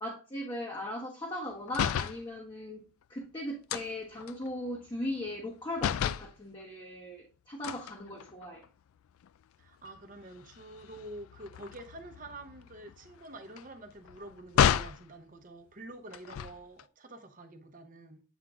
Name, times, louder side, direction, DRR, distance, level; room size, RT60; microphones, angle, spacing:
voice 1, 0.0-2.8 3.1-8.6, left 1 dB, 20° left, 1.0 m, -38 dB
sound 1, 1.7-2.2 3.7-5.5 5.8-6.3 7.6-8.7 9.2-9.4 9.7-15.0 16.1-16.8, left 9 dB, 85° left, 0.3 m, -33 dB
voice 2, 9.6-18.2, right 1 dB, 40° right, 0.8 m, -47 dB
8.0 x 3.6 x 3.6 m
head